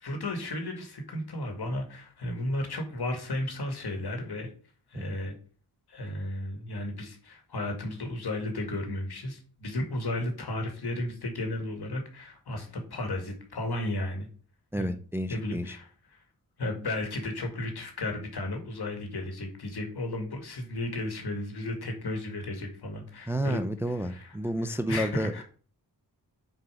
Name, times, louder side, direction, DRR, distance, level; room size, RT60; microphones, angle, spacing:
voice 1, 0.0-4.5 4.9-5.3 5.9-14.3 14.8-14.9 15.3-16.2 16.6-23.6 24.0-24.4 24.6-25.4, left 1 dB, 65° left, 4 dB, 1.9 m, -34 dB
voice 2, 14.7-15.8 23.3-25.4, right 1 dB, 5° right, 9 dB, 0.4 m, -31 dB
6.4 x 4.9 x 4.9 m, 0.42 s
wide cardioid pair, 130°, 41 cm